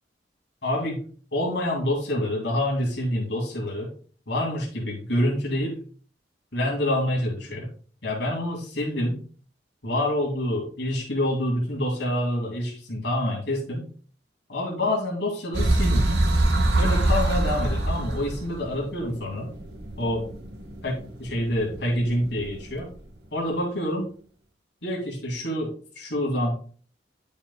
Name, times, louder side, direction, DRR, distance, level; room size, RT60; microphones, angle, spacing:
voice 1, 0.6-3.9 4.3-5.8 6.5-7.7 8.0-9.2 9.8-13.9 14.5-16.2 16.8-19.5 20.0-20.2 20.8-22.9 23.3-24.1 24.8-26.5, left 1 dB, 75° left, -2 dB, 2.6 m, -27 dB
sound 1, 15.5-22.9, right 1 dB, 65° right, 1.4 m, -25 dB
9.6 x 7.0 x 2.3 m, 0.43 s
head